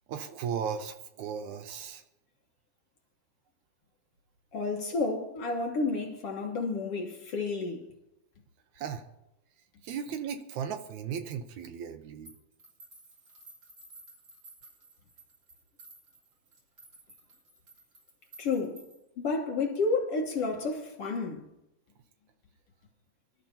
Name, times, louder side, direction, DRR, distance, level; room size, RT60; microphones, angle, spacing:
voice 1, 0.1-2.0 8.8-9.1 9.8-12.3, right 7 dB, 70° right, 2.2 m, -36 dB
voice 2, 4.5-7.9 18.4-18.8 19.2-21.5, left 3 dB, 55° left, 1.9 m, -31 dB
sound 1, 12.3-19.1, right 2 dB, 35° right, 4.1 m, -55 dB
25.5 x 12.5 x 2.8 m
omnidirectional pair, 3.7 m